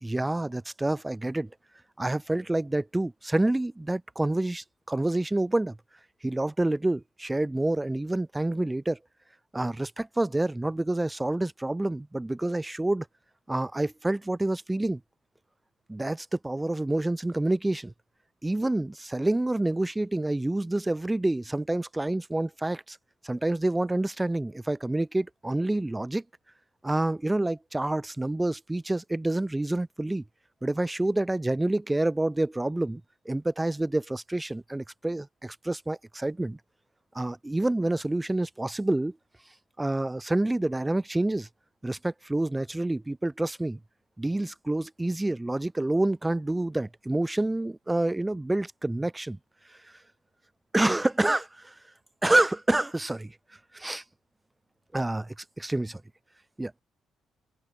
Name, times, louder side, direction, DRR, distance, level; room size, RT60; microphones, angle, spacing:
voice 1, 0.0-1.5 2.0-5.8 6.2-9.0 9.5-13.1 13.5-15.0 15.9-17.9 18.4-23.0 23.2-26.2 26.8-30.2 30.6-36.6 37.1-39.2 39.8-41.5 41.8-43.8 44.2-49.4 50.7-51.7 52.2-53.3 53.7-54.0 54.9-56.0 56.6-56.8, right 2 dB, 10° right, 1.0 m, -28 dB
open air
cardioid pair, 90°, 0 cm